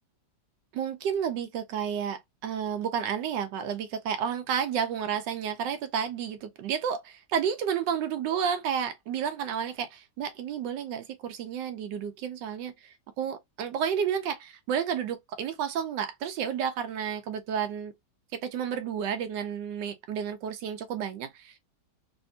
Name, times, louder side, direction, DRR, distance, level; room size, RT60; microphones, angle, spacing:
voice 1, 0.7-17.9 18.3-21.6, right 8 dB, 90° right, 1.3 m, -31 dB
3.3 x 2.7 x 2.6 m
omnidirectional pair, 1.9 m